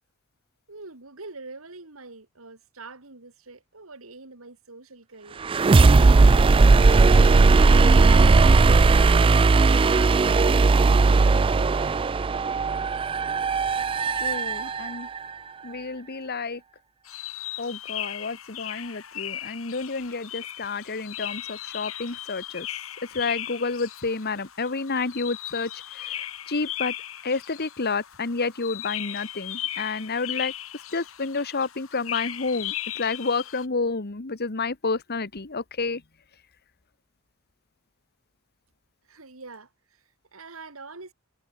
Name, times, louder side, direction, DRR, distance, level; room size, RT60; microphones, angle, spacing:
voice 1, 0.7-5.5 6.2-7.5 7.8-10.8 11.1-12.0 14.5-14.7 39.0-40.0 40.3-41.1, right 3 dB, 75° right, 2.8 m, -45 dB
sound 1, 5.4-15.2, right 3 dB, 25° right, 0.3 m, -17 dB
voice 2, 14.1-15.1 15.6-16.6 17.6-22.7 23.1-26.9 27.2-36.0, left 4 dB, 50° left, 1.4 m, -30 dB
sound 2, 17.0-33.6, left 12 dB, 75° left, 3.1 m, -37 dB
head